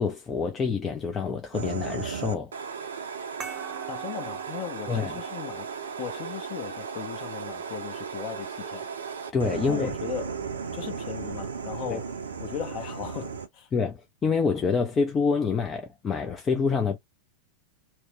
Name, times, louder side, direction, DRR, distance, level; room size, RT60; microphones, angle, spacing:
voice 1, 0.0-2.5 4.9-5.2 9.3-9.9 11.9-12.0 13.7-17.0, left 5 dB, 20° left, 0.5 m, -27 dB
sound 1, 1.5-13.5, right 6 dB, 70° right, 0.6 m, -35 dB
sound 2, 3.4-8.5, right 9 dB, 25° right, 0.7 m, -45 dB
voice 2, 3.9-5.7 6.0-8.9 9.6-10.4 10.7-13.7, left 10 dB, 40° left, 0.9 m, -37 dB
3.0 x 2.2 x 3.0 m
figure-of-eight pair, 90°, 0 cm